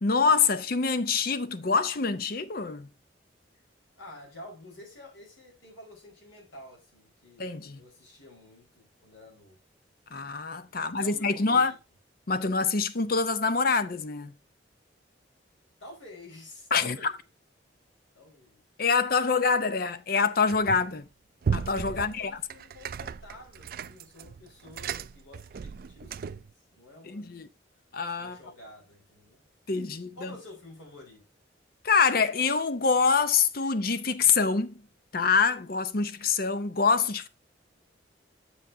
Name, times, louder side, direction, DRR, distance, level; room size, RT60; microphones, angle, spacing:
voice 1, 0.0-2.9 7.4-7.8 10.1-11.7 12.3-14.3 16.7-17.1 18.8-21.0 21.5-22.3 27.0-27.5 27.9-28.4 29.7-30.3 31.8-34.8 35.1-37.3, left 5 dB, 50° left, 0.7 m, -25 dB
voice 2, 4.0-9.6 10.6-11.8 15.8-17.2 18.1-18.6 21.9-27.3 28.1-29.4 30.1-31.3, left 1 dB, 85° left, 4.7 m, -49 dB
sound 1, 20.5-21.0 21.4-26.5, right 6 dB, 50° right, 0.3 m, -35 dB
8.0 x 7.8 x 2.7 m
head